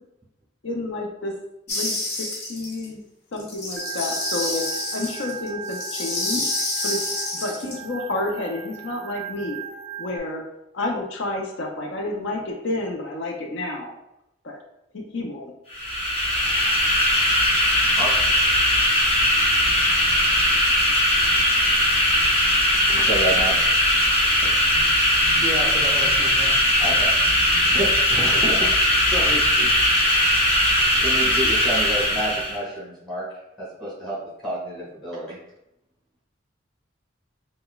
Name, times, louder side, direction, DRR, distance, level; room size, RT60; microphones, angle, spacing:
voice 1, 0.6-1.3 1.7-3.0 3.3-4.6 4.9-6.5 6.8-7.1 7.4-9.6 10.0-10.4 10.8-13.9 14.4-14.6 14.9-15.5, left 2 dB, 70° left, 1 dB, 0.5 m, -30 dB
sound 1, 1.7-2.9 3.4-7.8, left 2 dB, 55° left, 0.9 m, -28 dB
Organ, 3.8-10.2, right 7 dB, 90° right, 0.4 m, -38 dB
sound 2, 15.7-32.6, left 1 dB, 30° left, 0.7 m, -19 dB
voice 2, 16.4-16.9 17.9-18.1 22.9-23.5 26.8-27.1 27.8-27.9 31.0-33.2 33.6-35.4, right 1 dB, 5° left, -8 dB, 1.5 m, -29 dB
voice 3, 25.4-26.8 27.3-27.7 28.1-30.3, equal, 15° right, -4 dB, 0.3 m, -32 dB
4.9 x 2.2 x 2.3 m, 0.86 s
head